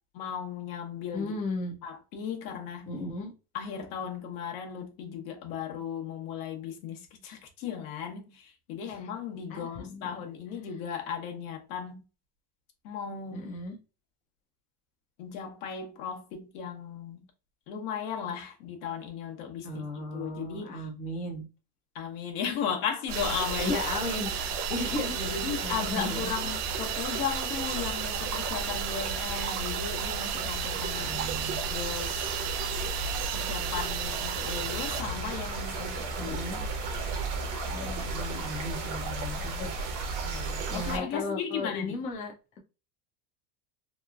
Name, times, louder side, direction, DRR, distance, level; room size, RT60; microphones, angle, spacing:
voice 1, 0.1-1.3 1.8-2.9 3.5-12.0 12.8-13.5 15.2-17.3 17.7-19.8 20.1-20.9 21.9-23.8 25.1-31.2 31.7-32.3 33.3-36.7 40.2-42.0, left 7 dB, 70° left, 0.9 m, -36 dB
voice 2, 1.1-1.8 2.9-3.3 8.9-9.0 9.5-10.3 13.3-13.8 19.6-21.5 23.6-26.5 31.0-31.6 36.2-36.7 37.7-39.7 40.7-42.6, left 2 dB, 20° left, 0.3 m, -36 dB
sound 1, 23.1-41.0, right 3 dB, 45° right, 0.7 m, -34 dB
sound 2, 23.1-35.0, right 12 dB, 80° right, 0.5 m, -35 dB
2.9 x 2.3 x 2.3 m
supercardioid pair, 140°, 45 cm